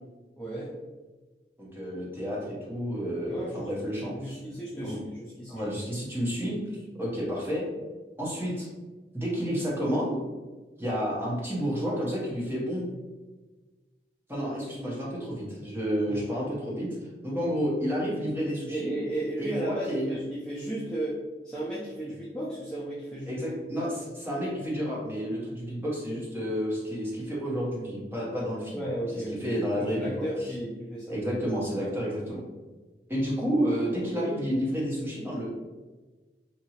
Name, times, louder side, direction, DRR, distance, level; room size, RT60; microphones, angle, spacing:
voice 1, 0.4-0.8 3.3-3.7 4.0-5.6 16.1-16.2 18.7-23.5 28.7-31.2, right 1 dB, 5° left, -9 dB, 0.4 m, -34 dB
voice 2, 1.6-4.4 4.8-5.0 5.5-6.6 7.0-7.7 8.2-8.7 9.1-10.1 10.8-12.9 14.3-16.9 17.2-18.9 19.4-20.2 22.0-22.1 23.3-28.8 29.1-30.5 31.1-32.4 33.1-35.4, equal, 10° right, -6 dB, 0.8 m, -30 dB
2.8 x 2.6 x 2.8 m, 1.3 s
head